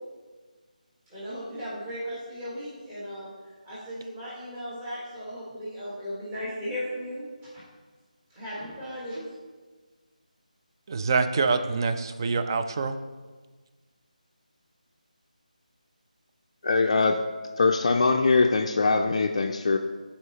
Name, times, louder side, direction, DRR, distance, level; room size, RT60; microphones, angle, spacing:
voice 1, 1.1-3.3 3.6-7.3 8.3-9.2, equal, 15° right, -9 dB, 1.4 m, -36 dB
voice 2, 10.9-13.0, right 4 dB, 30° right, 8 dB, 0.3 m, -25 dB
voice 3, 16.6-17.2 17.6-19.8, left 3 dB, 45° left, 4 dB, 0.4 m, -22 dB
10.5 x 4.2 x 2.9 m, 1.4 s
figure-of-eight pair, 160°, 4 cm